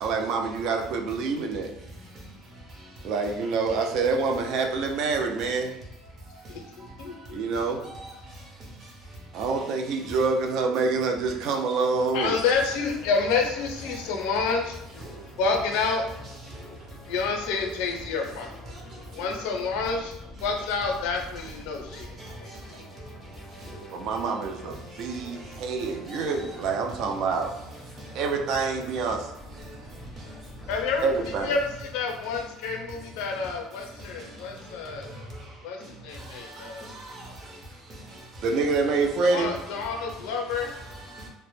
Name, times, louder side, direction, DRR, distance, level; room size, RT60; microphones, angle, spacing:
voice 1, 0.0-1.7 3.0-5.7 7.3-7.8 9.3-12.4 23.9-27.5 28.2-29.2 31.0-31.5 38.4-39.5, right 4 dB, 60° right, 0.3 m, -26 dB
voice 2, 6.5-7.6 12.1-15.0 15.4-16.0 17.1-18.5 19.1-20.2 20.4-22.0 22.4-22.5 30.7-31.1 31.4-35.1 35.6-35.8 36.0-36.8 39.3-40.7, left 4 dB, 80° left, 0.5 m, -29 dB
voice 3, 9.9-10.3 13.3-13.5 13.9-14.0 17.6-17.9 21.9-22.0 22.5-22.6 23.6-23.7 26.1-26.5 35.0-35.1 36.3-37.3 38.4-38.9 40.5-41.3, right 1 dB, 35° right, 0.7 m, -42 dB
sound 1, 12.5-31.7, left 1 dB, 10° left, 0.5 m, -46 dB
2.0 x 2.0 x 3.0 m
cardioid pair, 130°, 0 cm